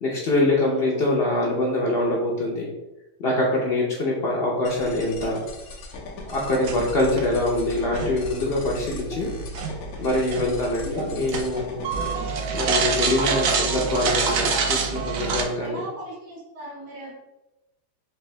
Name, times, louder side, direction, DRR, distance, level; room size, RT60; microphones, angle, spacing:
voice 1, 0.0-2.7 3.2-5.4 6.3-9.3 10.0-11.8 12.5-15.8, left 2 dB, 85° left, -3 dB, 0.5 m, -24 dB
voice 2, 0.6-1.0 3.7-3.9 6.7-6.8 10.3-10.5 15.6-17.1, right 1 dB, 25° right, -6 dB, 1.0 m, -38 dB
sound 1, 4.7-12.1, left 2 dB, 65° left, 1.0 m, -39 dB
sound 2, 6.6-15.4, right 5 dB, 70° right, 0.8 m, -27 dB
4.6 x 2.6 x 3.2 m, 0.94 s
omnidirectional pair, 1.9 m